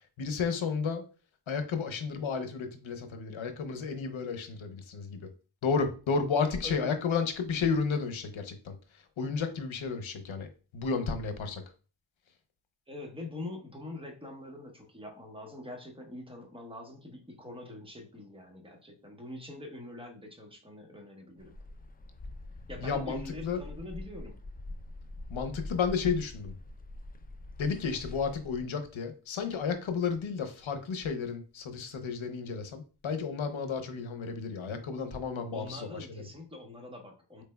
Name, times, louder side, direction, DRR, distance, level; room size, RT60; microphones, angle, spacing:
voice 1, 0.2-1.0 1.5-5.3 5.6-10.5 10.7-11.6 22.8-23.6 25.3-26.5 27.6-36.2, left 5 dB, 85° left, 7 dB, 0.7 m, -32 dB
voice 2, 6.6-7.0 12.9-21.6 22.7-24.4 35.5-37.4, left 2 dB, 10° right, 1 dB, 1.1 m, -44 dB
sound 1, 21.4-28.6, left 2 dB, 20° left, 0.4 m, -44 dB
4.4 x 3.3 x 2.2 m, 0.36 s
cardioid pair, 55°, 46 cm